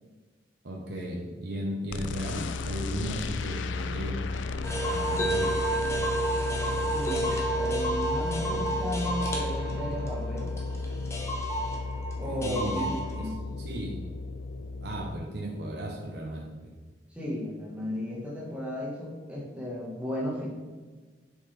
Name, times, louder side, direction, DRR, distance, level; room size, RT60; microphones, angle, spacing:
voice 1, 0.6-4.4 4.8-5.5 12.2-13.3 13.6-14.0 14.8-16.7, right 1 dB, 55° right, -1 dB, 0.9 m, -36 dB
sound 1, 1.9-15.2, left 3 dB, 75° left, 0.4 m, -34 dB
sound 2, 4.6-13.3, right 1 dB, 15° left, 0.8 m, -31 dB
voice 2, 6.9-10.5 12.2-13.4 17.1-20.5, left 1 dB, 5° right, -4 dB, 1.3 m, -34 dB
6.6 x 5.4 x 3.3 m, 1.4 s
head